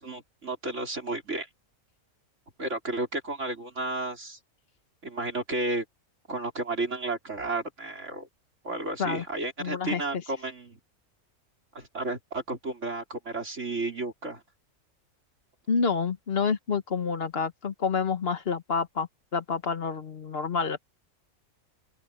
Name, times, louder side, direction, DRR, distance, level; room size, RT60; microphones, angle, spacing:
voice 1, 0.0-1.5 2.6-4.4 5.0-5.8 6.3-8.3 8.6-10.8 11.7-14.4, right 2 dB, 60° right, 4.5 m, -32 dB
voice 2, 9.6-10.0 15.7-20.8, left 5 dB, 45° left, 1.4 m, -28 dB
open air
omnidirectional pair, 1.4 m